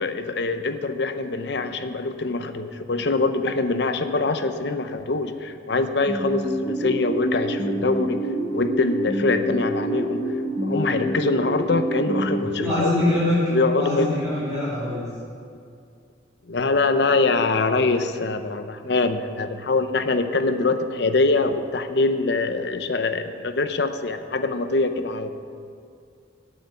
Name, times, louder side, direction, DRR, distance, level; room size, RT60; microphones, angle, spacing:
voice 1, 0.0-8.2 8.5-10.2 10.6-12.9 13.5-14.1 16.5-25.3, left 3 dB, 60° left, 9 dB, 0.7 m, -24 dB
sound 1, 6.1-13.2, equal, 25° left, 0.8 m, -27 dB
voice 2, 12.3-13.4 13.8-15.0, left 1 dB, 20° right, -12 dB, 3.1 m, -24 dB
8.9 x 8.7 x 8.1 m, 2.4 s
head